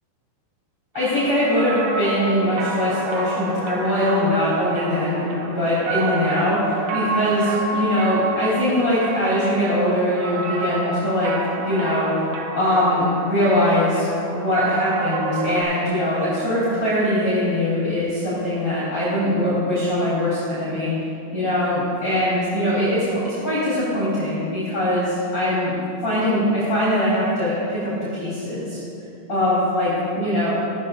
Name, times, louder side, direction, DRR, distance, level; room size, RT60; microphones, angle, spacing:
voice 1, 0.9-11.3 11.6-12.1 12.5-14.1 14.3-21.1 21.3-25.7 26.0-28.8 29.3-30.5, left 1 dB, 30° left, -10 dB, 4.1 m, -22 dB
sound 1, 1.0-15.6, right 3 dB, 80° right, 3.8 m, -30 dB
17.0 x 14.0 x 3.8 m, 2.8 s
omnidirectional pair, 5.6 m